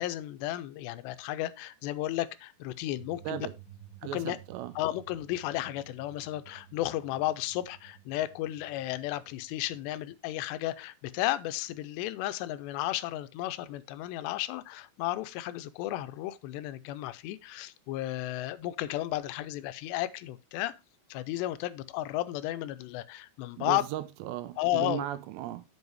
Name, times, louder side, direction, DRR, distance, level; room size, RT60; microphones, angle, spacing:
voice 1, 0.0-3.5 4.1-4.4 4.8-20.7 21.1-23.8 24.6-25.1, left 15 dB, 85° left, 2.7 m, -33 dB
sound 1, 2.9-10.2, right 10 dB, 35° right, 2.2 m, -54 dB
voice 2, 4.0-4.7 23.6-25.6, right 12 dB, 85° right, 2.9 m, -36 dB
8.1 x 5.4 x 4.6 m
omnidirectional pair, 5.0 m